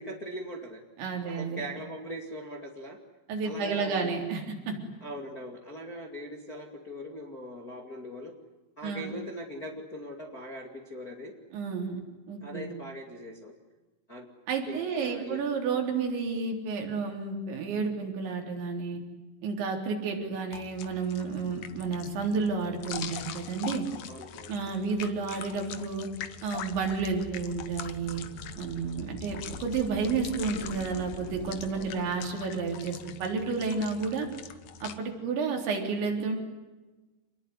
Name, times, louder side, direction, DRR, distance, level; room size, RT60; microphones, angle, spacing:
voice 1, 0.0-0.8 1.2-3.0 3.4-4.1 5.0-8.3 8.8-11.3 12.4-13.5 14.1-14.3 14.7-15.4 24.1-24.5 31.7-32.2, equal, 30° left, 2 dB, 2.0 m, -41 dB
voice 2, 1.0-1.6 3.3-4.8 8.8-9.2 11.5-12.0 12.3-12.7 14.5-19.0 19.4-23.9 24.5-26.1 26.4-28.2 28.6-34.3 34.8-36.4, right 5 dB, 70° right, 2 dB, 5.9 m, -31 dB
sound 1, 20.5-35.0, left 9 dB, 85° left, 1.7 m, -43 dB
sound 2, 26.2-32.6, left 4 dB, 65° left, 4.1 m, -45 dB
28.0 x 20.5 x 9.7 m, 1.2 s
omnidirectional pair, 5.4 m